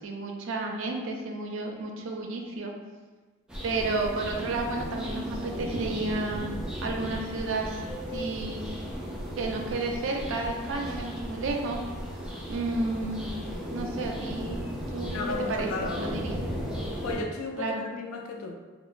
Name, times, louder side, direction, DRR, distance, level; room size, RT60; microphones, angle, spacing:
voice 1, 0.0-2.7 3.6-7.8 8.1-8.6 9.4-11.8 12.5-13.3 13.7-15.2 15.5-16.4 17.6-17.8, right 3 dB, 70° right, 1 dB, 0.4 m, -32 dB
sound 1, 3.5-17.2, equal, 5° right, 0.4 m, -35 dB
voice 2, 15.1-16.2 17.0-18.5, left 3 dB, 90° left, 2 dB, 0.4 m, -34 dB
2.9 x 2.0 x 2.4 m, 1.3 s
head